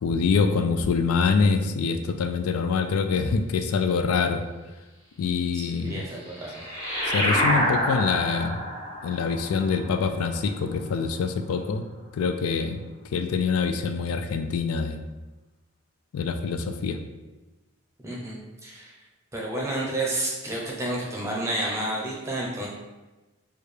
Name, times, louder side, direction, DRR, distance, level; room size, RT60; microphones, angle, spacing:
voice 1, 0.0-4.4 5.2-6.0 7.1-8.6 9.0-11.9 12.1-12.8 13.1-15.0 16.1-17.0, left 5 dB, 85° left, 7 dB, 0.3 m, -25 dB
voice 2, 5.5-6.5 18.0-18.9 19.3-22.7, right 1 dB, 15° right, -4 dB, 0.7 m, -30 dB
sound 1, 5.9-11.0, equal, 15° left, 1.0 m, -28 dB
4.6 x 2.4 x 3.2 m, 1.1 s
head